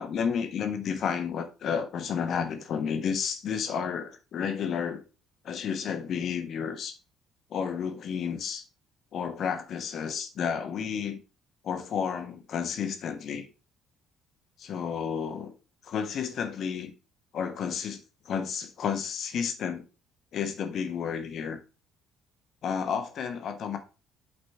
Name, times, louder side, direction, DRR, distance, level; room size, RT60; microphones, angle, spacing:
voice 1, 0.0-5.0 5.4-7.0 7.5-8.6 9.1-11.2 11.6-13.5 14.6-15.5 15.8-16.9 17.3-18.0 18.2-19.8 20.3-21.6 22.6-23.8, left 7 dB, 55° left, 1.4 m, -31 dB
8.1 x 4.3 x 4.3 m
hypercardioid pair, 50°, 0 cm